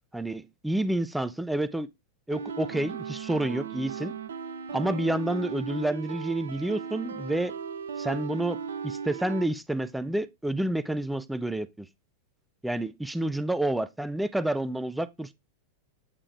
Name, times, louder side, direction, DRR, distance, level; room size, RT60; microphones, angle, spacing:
voice 1, 0.1-1.9 2.3-4.1 4.7-7.5 8.0-8.6 8.8-11.9 12.6-15.3, right 1 dB, 5° right, 0.4 m, -29 dB
sound 1, 2.3-9.5, right 6 dB, 65° right, 0.6 m, -37 dB
8.2 x 3.6 x 3.4 m
figure-of-eight pair, 90°, 0 cm